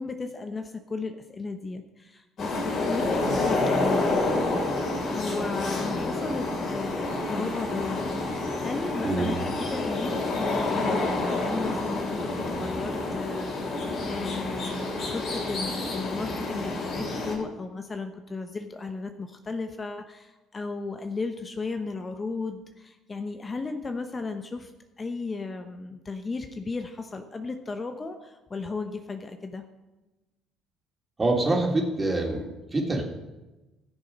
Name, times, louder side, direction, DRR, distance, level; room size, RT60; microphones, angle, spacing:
voice 1, 0.0-4.1 5.1-24.7 25.0-29.6, left 3 dB, 30° left, 7 dB, 0.9 m, -35 dB
sound 1, 2.4-17.3, left 2 dB, 55° left, 3.6 m, -28 dB
voice 2, 9.0-9.3 31.2-33.0, right 2 dB, 25° right, 0 dB, 2.9 m, -25 dB
15.0 x 6.7 x 5.4 m, 1.1 s
hypercardioid pair, 55°, 0 cm